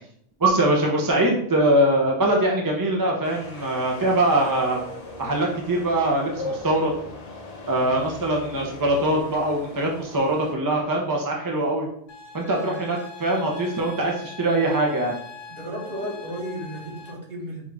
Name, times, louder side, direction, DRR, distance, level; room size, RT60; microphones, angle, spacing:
voice 1, 0.4-4.8 5.2-6.9 7.7-11.9 12.3-15.1, right 1 dB, 25° right, 0 dB, 0.5 m, -22 dB
sound 1, 3.2-10.5, left 2 dB, 40° left, 0.7 m, -38 dB
voice 2, 7.7-8.1 12.6-12.8 15.5-17.7, equal, 55° right, -3 dB, 1.5 m, -34 dB
sound 2, 12.1-17.1, left 3 dB, 65° left, 1.2 m, -42 dB
5.2 x 2.4 x 3.3 m, 0.71 s
omnidirectional pair, 1.2 m